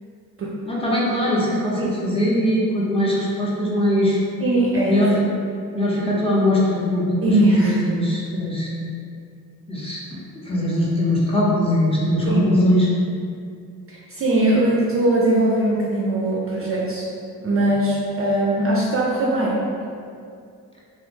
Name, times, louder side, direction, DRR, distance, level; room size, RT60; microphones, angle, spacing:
voice 1, 0.7-4.2 4.8-5.2 5.7-8.7 9.7-12.9, left 1 dB, 15° left, -6 dB, 0.6 m, -21 dB
voice 2, 4.4-5.1 7.2-7.8 12.3-12.6 13.9-17.1 17.4-19.6, right 1 dB, 35° right, -4 dB, 0.4 m, -20 dB
2.1 x 2.0 x 3.0 m, 2.4 s
supercardioid pair, 60°, 40 cm